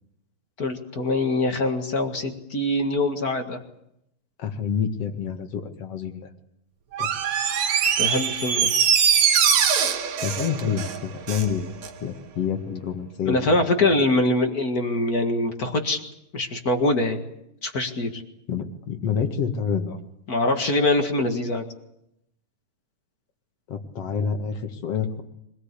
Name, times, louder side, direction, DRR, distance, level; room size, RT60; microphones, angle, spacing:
voice 1, 0.6-3.6 8.0-8.7 13.2-16.0 16.3-17.2 17.6-18.2 20.3-21.6, left 2 dB, 35° left, 5 dB, 1.8 m, -23 dB
voice 2, 4.4-6.3 7.0-7.1 10.2-11.7 12.0-13.5 18.5-20.0 23.7-25.2, left 7 dB, 50° left, 6 dB, 2.6 m, -28 dB
Door, 6.9-11.5 11.8-11.9, right 7 dB, 85° right, 3.3 m, -22 dB
24.5 x 19.0 x 8.4 m, 0.80 s
omnidirectional pair, 3.8 m